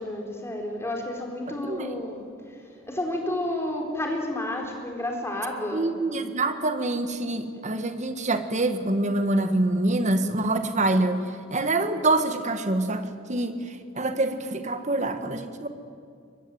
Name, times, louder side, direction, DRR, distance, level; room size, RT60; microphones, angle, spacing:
voice 1, 0.0-2.2 2.9-5.9, left 1 dB, 15° left, 2 dB, 4.1 m, -30 dB
voice 2, 5.7-11.2 11.5-15.7, right 2 dB, 35° right, 8 dB, 1.7 m, -26 dB
22.5 x 22.0 x 9.2 m, 2.3 s
head